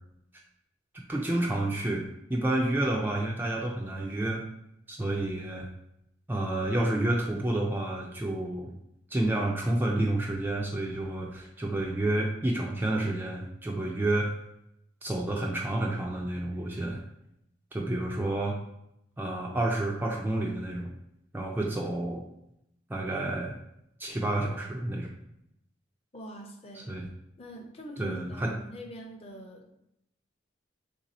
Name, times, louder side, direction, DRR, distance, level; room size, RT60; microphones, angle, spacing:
voice 1, 1.1-4.4 4.9-5.7 6.3-8.7 9.1-14.3 15.0-17.0 17.7-18.6 19.2-20.9 21.3-22.2 22.9-23.6 24.0-25.1 26.9-27.1 28.0-28.5, right 1 dB, 10° right, -1 dB, 0.3 m, -29 dB
voice 2, 26.1-27.0 27.4-29.7, equal, 30° left, 2 dB, 0.6 m, -44 dB
3.3 x 2.7 x 4.1 m, 0.81 s
head